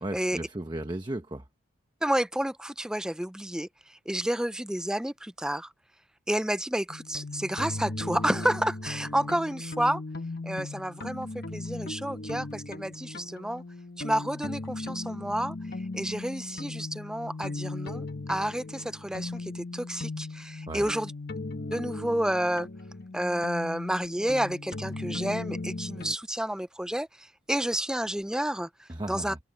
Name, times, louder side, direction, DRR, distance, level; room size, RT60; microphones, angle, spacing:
voice 1, 0.0-1.5 20.7-20.9 28.9-29.4, right 1 dB, 20° right, 1.0 m, -35 dB
voice 2, 2.0-5.7 6.3-10.0 10.4-13.6 14.0-15.6 15.9-21.1 21.7-22.7 23.1-29.3, right 1 dB, 5° right, 0.4 m, -30 dB
sound 1, 6.9-26.1, left 2 dB, 50° left, 1.2 m, -37 dB
head